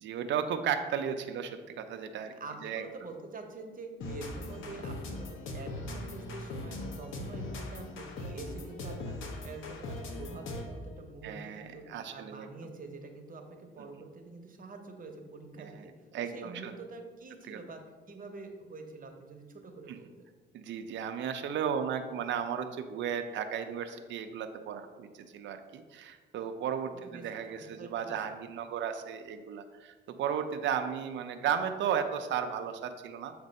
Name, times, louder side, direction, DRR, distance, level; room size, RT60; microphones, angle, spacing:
voice 1, 0.0-2.4 2.6-2.8 11.2-12.5 13.8-14.0 15.6-15.9 16.1-16.7 17.5-17.6 19.9-20.0 20.5-33.4, right 8 dB, 70° right, 7 dB, 0.5 m, -35 dB
voice 2, 2.3-15.9 16.2-17.8 18.1-20.3 27.0-28.3, right 3 dB, 45° right, 4 dB, 0.9 m, -46 dB
sound 1, 4.0-10.9, left 2 dB, 80° left, 0.8 m, -40 dB
7.3 x 2.6 x 5.2 m, 1.4 s
cardioid pair, 90°, 20 cm